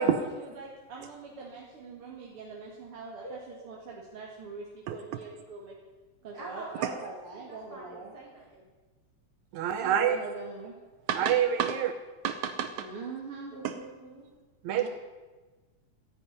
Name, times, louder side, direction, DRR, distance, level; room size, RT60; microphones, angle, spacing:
voice 1, 0.3-3.4 3.7-5.8 6.2-8.1 9.7-10.7 12.8-13.5 14.7-14.9, right 4 dB, 50° right, -2 dB, 2.8 m, -42 dB
voice 2, 3.2-3.7 6.3-8.7 9.8-10.0 13.5-14.2, equal, 30° right, -9 dB, 4.4 m, -46 dB
voice 3, 9.5-10.2 11.1-11.9 12.2-12.9 13.6-13.7 14.6-14.9, right 9 dB, 80° right, 9 dB, 2.2 m, -27 dB
13.5 x 10.5 x 9.9 m, 1.3 s
omnidirectional pair, 3.3 m